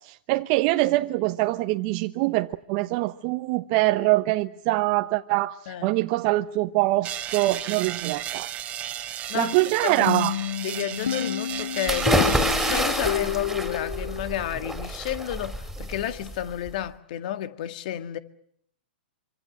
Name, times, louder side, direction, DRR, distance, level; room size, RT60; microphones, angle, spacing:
voice 1, 0.0-8.5 9.3-10.3, right 19 dB, 40° right, 1.0 m, -24 dB
voice 2, 5.7-6.0 9.3-9.5 9.8-10.1 10.6-18.2, left 12 dB, 50° left, 1.9 m, -31 dB
sound 1, 7.0-12.8, right 11 dB, 25° right, 2.2 m, -34 dB
sound 2, 10.1-14.8, left 10 dB, 70° left, 1.1 m, -30 dB
sound 3, 11.9-16.7, right 1 dB, ahead, 4.6 m, -27 dB
25.5 x 25.5 x 7.8 m
hypercardioid pair, 125°, 6 cm